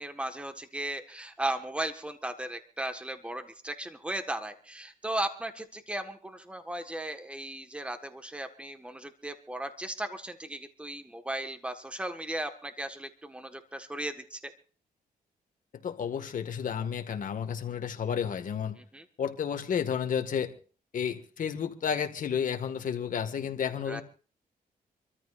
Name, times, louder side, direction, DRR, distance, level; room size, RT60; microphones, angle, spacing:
voice 1, 0.0-14.5 18.8-19.0 23.9-24.0, right 1 dB, 5° right, 1.6 m, -36 dB
voice 2, 15.8-18.8 19.2-20.5 20.9-24.0, left 7 dB, 60° left, 2.0 m, -31 dB
27.0 x 13.5 x 2.6 m
cardioid pair, 95°, 15 cm